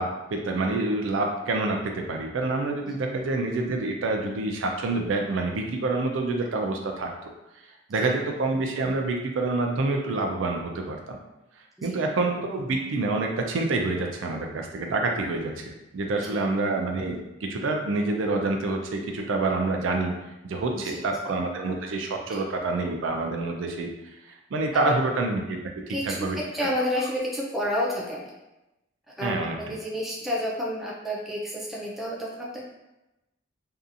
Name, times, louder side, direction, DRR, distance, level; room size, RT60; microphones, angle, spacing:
voice 1, 0.0-7.1 7.9-11.2 11.8-15.6 15.9-20.1 20.4-25.6 25.9-26.4 29.2-29.8, right 2 dB, 75° right, 2 dB, 0.4 m, -27 dB
voice 2, 20.7-21.0 22.3-22.4 24.7-25.0 25.9-26.3 26.5-28.3 29.2-32.6, equal, ahead, -5 dB, 0.4 m, -30 dB
2.7 x 2.4 x 2.5 m, 0.96 s
head